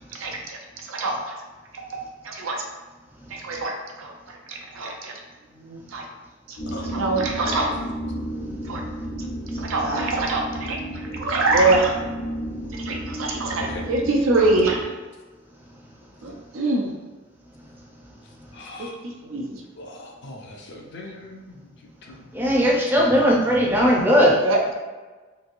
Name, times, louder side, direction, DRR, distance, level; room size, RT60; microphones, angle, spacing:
voice 1, 0.2-1.3 1.7-2.6 3.3-4.1 4.5-5.2 5.6-6.0 6.5-6.6 6.9-7.7 8.7-8.8 9.6-10.8 11.1-12.0 12.7-13.6 13.9-14.9 16.2-16.9 18.8-19.6 24.4-24.7, right 2 dB, 85° right, 1 dB, 0.5 m, -24 dB
sound 1, 6.6-14.8, equal, 80° left, 0.9 m, -32 dB
voice 2, 18.5-18.9 19.8-22.3 23.5-23.8, left 2 dB, 60° left, 1 dB, 0.5 m, -40 dB
voice 3, 22.3-24.4, equal, 10° right, -3 dB, 0.5 m, -18 dB
3.0 x 2.6 x 2.5 m, 1.3 s
head